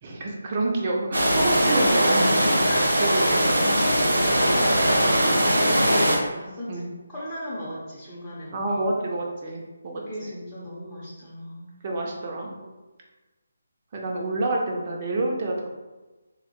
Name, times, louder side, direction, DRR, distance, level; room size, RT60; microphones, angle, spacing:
voice 1, 0.0-3.7 4.3-4.7 5.9-6.1 6.7-6.9 8.5-10.3 11.8-12.6 13.9-15.7, right 2 dB, 30° right, -1 dB, 0.5 m, -28 dB
sound 1, 1.1-6.2, equal, 70° right, 0.8 m, -20 dB
voice 2, 1.5-1.8 2.6-3.2 4.5-5.1 5.6-6.8 7.1-8.9 10.0-11.8 12.6-12.7, equal, 5° left, -14 dB, 0.7 m, -37 dB
3.7 x 2.1 x 2.9 m, 1.2 s
figure-of-eight pair, 150°, 0 cm